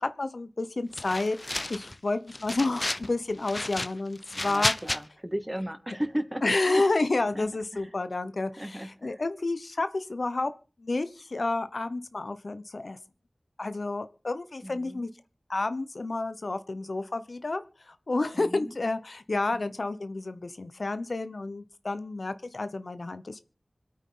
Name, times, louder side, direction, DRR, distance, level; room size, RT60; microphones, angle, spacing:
voice 1, 0.0-1.4 1.7-4.7 6.4-10.5 10.8-13.0 13.6-15.1 15.5-23.4, left 2 dB, 70° left, 12 dB, 0.9 m, -30 dB
sound 1, 0.9-1.9 2.3-3.1 3.4-5.0, left 1 dB, 35° left, 0.8 m, -32 dB
voice 2, 4.3-6.8 7.3-7.5 7.7-7.9 8.6-9.2 14.6-15.1 18.3-18.8 19.5-19.7, equal, 15° right, 7 dB, 2.3 m, -36 dB
26.0 x 8.9 x 3.8 m, 0.35 s
wide cardioid pair, 60°, 0 cm